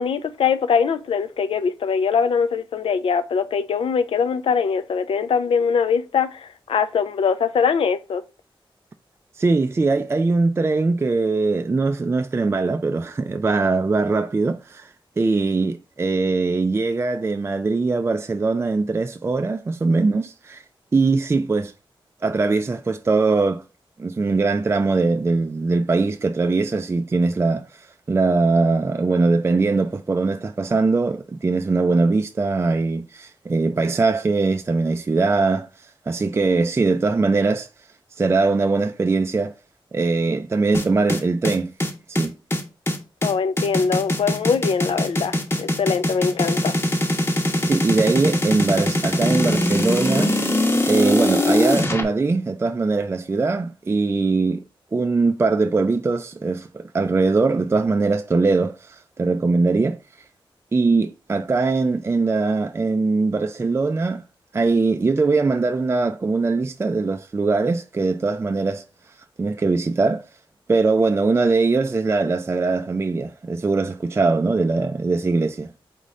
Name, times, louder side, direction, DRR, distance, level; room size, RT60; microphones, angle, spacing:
voice 1, 0.0-8.2 43.2-46.7, left 6 dB, 80° left, 0.4 m, -22 dB
voice 2, 9.4-14.9 15.2-20.6 20.9-21.7 22.2-23.6 24.0-35.7 36.1-37.7 38.2-39.6 39.9-41.7 42.1-42.4 47.7-50.3 50.9-54.6 54.9-60.0 60.7-64.2 64.5-68.8 69.4-70.2 70.7-75.7, right 3 dB, 30° right, 0.3 m, -21 dB
sound 1, 40.7-52.0, left 1 dB, 25° left, 0.9 m, -22 dB
4.1 x 3.6 x 3.2 m
cardioid pair, 70°, 9 cm